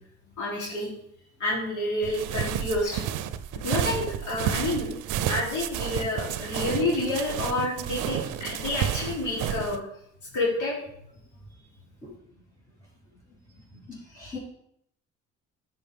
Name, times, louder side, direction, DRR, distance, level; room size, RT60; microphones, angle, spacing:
voice 1, 0.4-0.9 1.4-3.1 3.5-5.0 5.3-9.8 10.3-10.8, left 2 dB, 75° left, -6 dB, 3.5 m, -29 dB
sound 1, 2.0-9.8, right 10 dB, 90° right, 0.6 m, -31 dB
voice 2, 13.9-14.4, left 5 dB, 25° left, -9 dB, 3.9 m, -40 dB
10.5 x 6.2 x 3.5 m, 0.72 s
cardioid pair, 90°, 30 cm